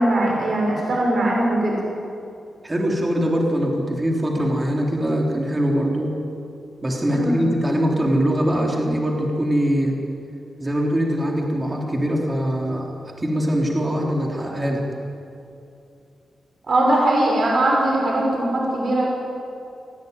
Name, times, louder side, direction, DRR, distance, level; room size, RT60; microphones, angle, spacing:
voice 1, 0.0-1.8 7.1-7.4 16.7-19.1, right 1 dB, 45° right, -2 dB, 6.2 m, -20 dB
voice 2, 2.6-6.1 6.8-10.0 10.6-12.9 13.2-14.8, equal, 15° right, -1 dB, 3.6 m, -22 dB
28.0 x 18.0 x 9.5 m, 2.6 s
wide cardioid pair, 170°, 0 cm